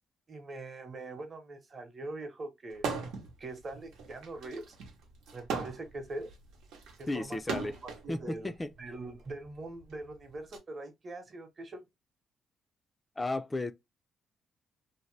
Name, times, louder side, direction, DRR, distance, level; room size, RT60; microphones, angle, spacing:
voice 1, 0.3-2.9 3.4-4.8 5.3-6.3 7.0-8.5 8.8-11.8, right 2 dB, 40° right, 0.9 m, -42 dB
sound 1, 2.7-3.3 3.7-8.1 8.9-10.6, right 5 dB, 85° right, 0.8 m, -38 dB
voice 2, 7.1-7.8 8.1-8.7 13.2-13.7, left 2 dB, 20° left, 0.4 m, -34 dB
2.7 x 2.1 x 3.1 m
cardioid pair, 90°, 0 cm